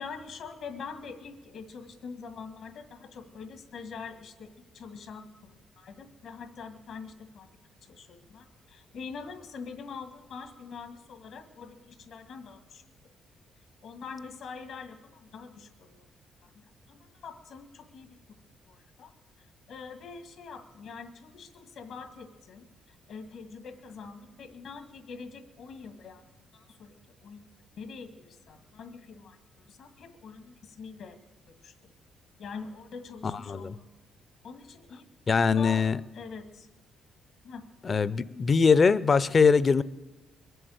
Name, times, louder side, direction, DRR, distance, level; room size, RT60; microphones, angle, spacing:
voice 1, 0.0-4.5 4.7-7.5 7.8-12.8 13.8-16.1 16.4-18.1 18.7-19.1 19.7-22.6 23.1-26.2 26.5-26.9 27.2-27.4 27.8-31.2 31.6-31.7 32.4-33.8 34.4-35.9 36.1-36.7 37.4-37.6, left 5 dB, 75° left, 1.9 m, -44 dB
voice 2, 35.3-36.0 37.8-39.8, left 5 dB, 40° left, 0.5 m, -22 dB
22.0 x 7.9 x 8.0 m
cardioid pair, 90°, 0 cm